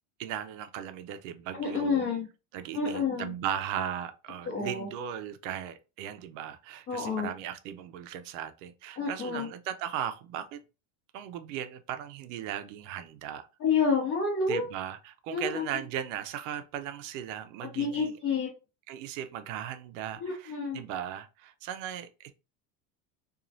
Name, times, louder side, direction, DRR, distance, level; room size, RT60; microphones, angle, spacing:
voice 1, 0.2-2.1 2.5-10.6 11.1-13.5 14.5-18.2 18.9-22.3, right 10 dB, 60° right, 0.5 m, -37 dB
voice 2, 1.5-2.3 2.7-3.3 4.5-4.9 6.9-7.3 9.0-9.5 13.6-14.7 15.3-15.6 17.7-18.5 20.2-20.8, left 5 dB, 40° left, 1.2 m, -29 dB
2.9 x 2.4 x 2.5 m
cardioid pair, 175°, 43 cm